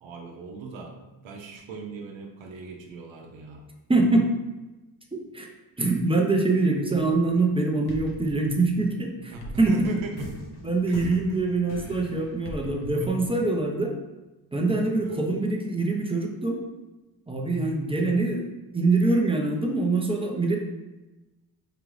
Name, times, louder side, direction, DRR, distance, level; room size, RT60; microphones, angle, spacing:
voice 1, 0.0-3.7 9.2-10.3 10.9-11.2 12.6-13.2 14.9-15.3, right 4 dB, 70° right, 3 dB, 0.9 m, -39 dB
voice 2, 3.9-4.3 5.1-5.5 5.8-9.9 10.6-13.9 14.5-16.6 17.3-20.6, right 3 dB, 10° right, 1 dB, 0.7 m, -24 dB
sound 1, 7.3-7.5 7.9-13.7, equal, 55° left, 1.0 m, -41 dB
4.9 x 2.5 x 3.3 m, 1.1 s
supercardioid pair, 70°, 48 cm